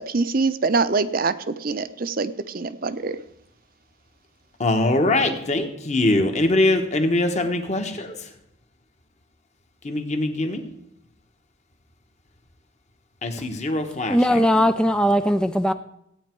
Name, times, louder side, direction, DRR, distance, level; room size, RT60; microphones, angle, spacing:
voice 1, 0.0-3.2, right 4 dB, 45° right, 13 dB, 0.7 m, -24 dB
voice 2, 4.6-8.1 9.8-10.6 13.2-14.4, left 2 dB, 35° left, 5 dB, 1.4 m, -22 dB
voice 3, 14.1-15.7, equal, 5° left, 10 dB, 0.4 m, -19 dB
15.5 x 9.5 x 4.6 m, 0.80 s
head